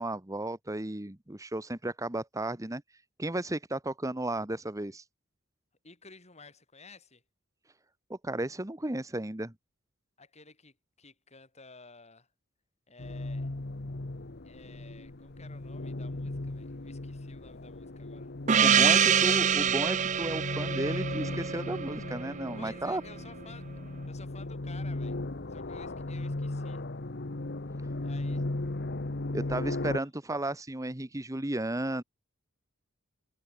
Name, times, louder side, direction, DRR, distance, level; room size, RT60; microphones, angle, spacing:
voice 1, 0.0-2.8 3.2-5.0 8.1-9.5 18.6-23.0 29.3-32.0, right 1 dB, 15° right, 1.1 m, -34 dB
voice 2, 5.8-7.2 10.2-12.3 12.9-13.5 14.4-18.3 18.7-19.4 22.6-23.8 24.1-25.2 25.5-26.8 28.0-28.4, left 3 dB, 30° left, 6.0 m, -53 dB
sound 1, 13.0-30.0, left 2 dB, 50° left, 1.2 m, -37 dB
Gong, 18.5-22.8, right 8 dB, 35° right, 0.6 m, -26 dB
head